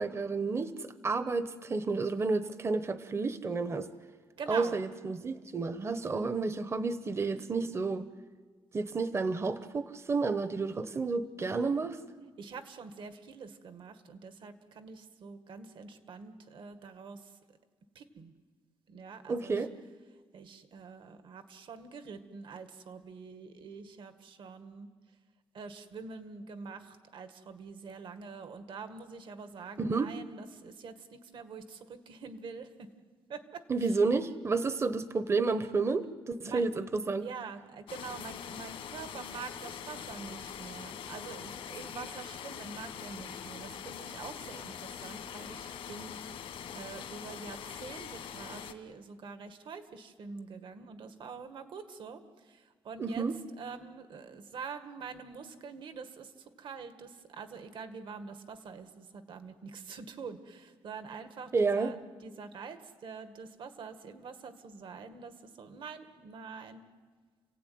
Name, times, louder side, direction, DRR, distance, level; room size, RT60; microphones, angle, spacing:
voice 1, 0.0-3.9 4.5-8.1 8.7-12.0 19.3-19.7 29.8-30.1 33.7-37.3 53.0-53.4 61.5-61.9, right 4 dB, 30° right, 12 dB, 1.0 m, -31 dB
voice 2, 4.4-4.8 12.4-17.3 18.0-18.3 18.9-19.6 20.3-24.9 25.5-32.9 33.3-33.6 36.4-36.6 37.1-46.5 46.7-53.2 53.6-56.3 56.6-66.8, right 5 dB, 65° right, 9 dB, 1.9 m, -45 dB
sound 1, 37.9-48.7, left 8 dB, 80° left, 1.8 m, -43 dB
29.5 x 16.5 x 9.5 m, 1.5 s
cardioid pair, 120°, 9 cm